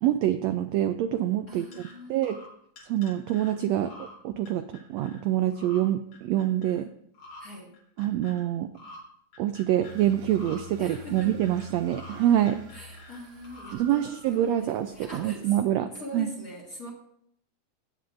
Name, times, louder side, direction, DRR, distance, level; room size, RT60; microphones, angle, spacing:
voice 1, 0.0-1.7 2.1-2.4 2.9-6.9 8.0-8.7 9.4-12.6 13.7-16.3, right 12 dB, 85° right, 8 dB, 1.5 m, -26 dB
voice 2, 1.5-2.4 7.4-7.7 10.8-11.4 12.7-15.6 15.9-16.9, left 1 dB, 35° left, -1 dB, 1.8 m, -42 dB
sound 1, 1.7-1.9 2.2-3.5 3.9-4.1 4.5-5.2 5.5-5.8 6.1-6.8 7.1-7.4 7.7-8.4 8.7-9.0 9.3-10.0 10.3-10.6 10.9-12.1 12.4-13.2 13.4-13.7, left 2 dB, 80° left, 5.0 m, -47 dB
sound 2, 9.8-15.5, right 1 dB, 60° right, 2.2 m, -48 dB
16.5 x 9.1 x 2.6 m, 0.70 s
omnidirectional pair, 3.5 m